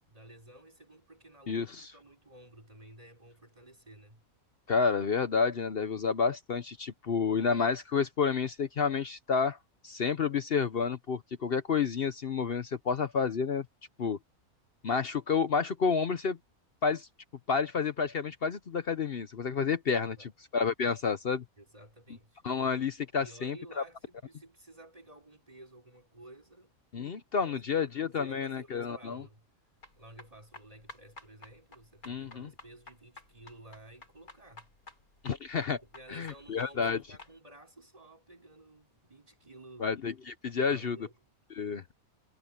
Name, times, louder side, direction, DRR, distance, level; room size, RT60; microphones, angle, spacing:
voice 1, 0.1-1.7 1.9-4.3 20.0-20.3 21.6-22.4 23.1-26.8 27.4-29.5 30.0-34.7 35.7-39.9 40.7-41.1, right 1 dB, 25° right, 4.4 m, -53 dB
voice 2, 1.5-1.9 4.7-9.6 9.8-13.7 14.0-14.2 14.8-16.4 16.8-17.1 17.5-21.4 22.4-23.8 26.9-29.2 32.1-32.5 35.2-35.8 36.1-37.0 39.8-41.0 41.6-41.8, left 5 dB, 50° left, 0.9 m, -30 dB
sound 1, 29.8-37.3, left 2 dB, 80° left, 5.5 m, -52 dB
omnidirectional pair, 1.5 m